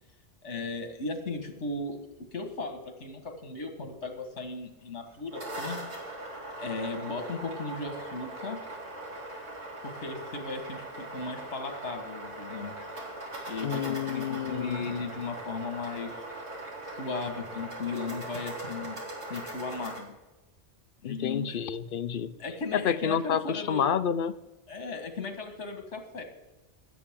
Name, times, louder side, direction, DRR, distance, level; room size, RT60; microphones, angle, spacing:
voice 1, 0.4-2.0 2.3-5.8 6.6-8.6 9.8-12.9 13.5-16.3 16.9-19.0 19.3-20.2 21.0-21.6 22.4-23.9 24.7-26.2, left 3 dB, 75° left, 5 dB, 1.9 m, -36 dB
sound 1, 5.1-20.0, right 2 dB, 70° right, 3.4 m, -40 dB
voice 2, 13.6-14.9 21.0-22.3 22.7-24.3, left 8 dB, 55° left, 13 dB, 0.7 m, -29 dB
16.5 x 11.5 x 3.7 m, 1.1 s
omnidirectional pair, 1.2 m